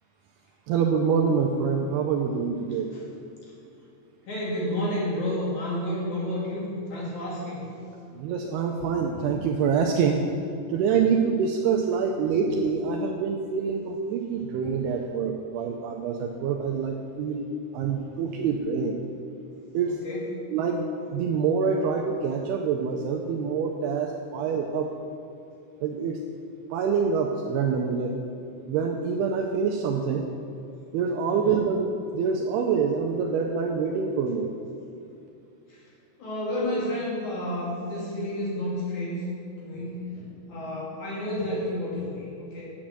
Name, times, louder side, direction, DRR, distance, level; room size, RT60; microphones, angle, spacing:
voice 1, 0.7-2.9 8.2-10.3 10.7-17.5 17.7-19.0 19.7-20.0 20.5-24.9 25.8-26.2 26.7-28.2 28.7-30.3 30.9-34.5, right 6 dB, 90° right, 3 dB, 2.3 m, -26 dB
voice 2, 4.3-7.6 14.3-14.5 20.0-20.2 31.2-31.7 35.7-35.8 36.2-39.3 39.6-42.6, left 1 dB, 50° left, -6 dB, 3.3 m, -31 dB
8.9 x 7.3 x 7.5 m, 2.6 s
omnidirectional pair, 5.2 m